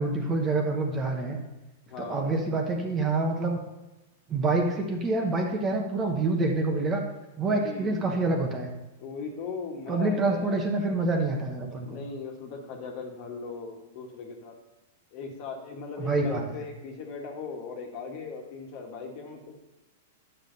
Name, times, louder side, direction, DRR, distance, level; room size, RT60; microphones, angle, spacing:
voice 1, 0.0-1.4 2.0-3.6 4.3-7.0 7.4-8.7 9.9-12.0 16.0-16.4, right 3 dB, 20° right, 2 dB, 1.1 m, -27 dB
voice 2, 1.9-2.2 7.5-8.1 9.0-10.6 11.8-14.5 15.1-19.4, left 4 dB, 45° left, 1 dB, 1.6 m, -38 dB
9.2 x 6.6 x 4.0 m, 1.1 s
hypercardioid pair, 145°, 0 cm